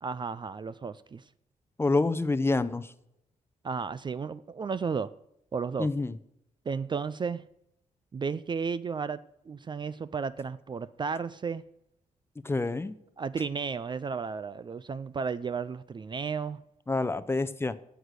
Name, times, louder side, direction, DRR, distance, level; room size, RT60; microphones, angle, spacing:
voice 1, 0.0-1.2 3.6-5.1 5.5-5.9 6.7-7.4 8.1-9.2 9.5-11.6 13.2-16.6, right 5 dB, 35° right, 0.4 m, -33 dB
voice 2, 1.8-2.9 5.8-6.2 12.4-13.0 16.9-17.8, left 3 dB, 15° left, 0.6 m, -27 dB
11.0 x 8.0 x 8.1 m
cardioid pair, 95°, 14 cm